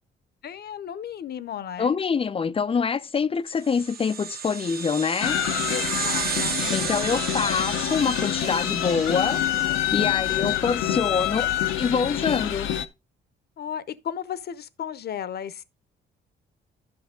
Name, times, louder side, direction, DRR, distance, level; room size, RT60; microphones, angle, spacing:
voice 1, 0.4-2.0 5.7-7.4 10.3-10.6 10.9-11.6 13.6-15.6, left 8 dB, 55° left, 0.8 m, -35 dB
voice 2, 1.8-5.4 6.7-9.5 9.9-11.5 11.8-12.7, left 6 dB, 30° left, 0.4 m, -25 dB
sound 1, 3.6-10.5, right 5 dB, 50° right, 1.2 m, -32 dB
sound 2, 5.2-12.9, left 12 dB, 85° left, 0.7 m, -27 dB
11.5 x 5.6 x 3.7 m
cardioid pair, 90°, 20 cm